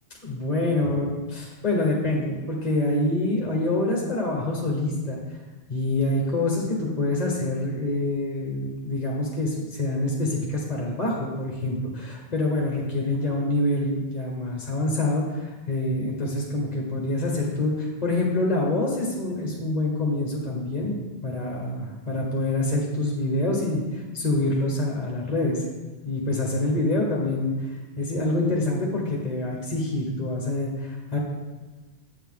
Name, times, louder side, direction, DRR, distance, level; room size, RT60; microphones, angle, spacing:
voice 1, 0.2-5.4 5.7-25.6 26.0-27.5 28.0-31.2, left 2 dB, 40° left, -2 dB, 1.2 m, -26 dB
8.2 x 7.2 x 3.7 m, 1.2 s
omnidirectional pair, 1.1 m